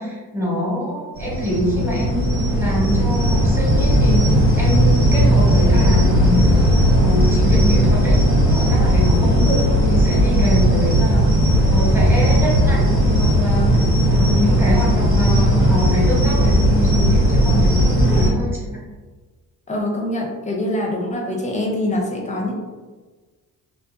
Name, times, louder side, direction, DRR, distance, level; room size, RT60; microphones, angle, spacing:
voice 1, 0.0-4.3 4.6-6.4 7.0-8.2 8.5-11.2 11.7-18.8, equal, 5° right, -6 dB, 0.9 m, -25 dB
sound 1, 1.1-18.3, equal, 75° right, 1.2 m, -16 dB
voice 2, 18.1-18.4 19.7-22.5, left 1 dB, 20° left, -1 dB, 0.5 m, -24 dB
2.5 x 2.2 x 2.4 m, 1.3 s
cardioid pair, 105°, 36 cm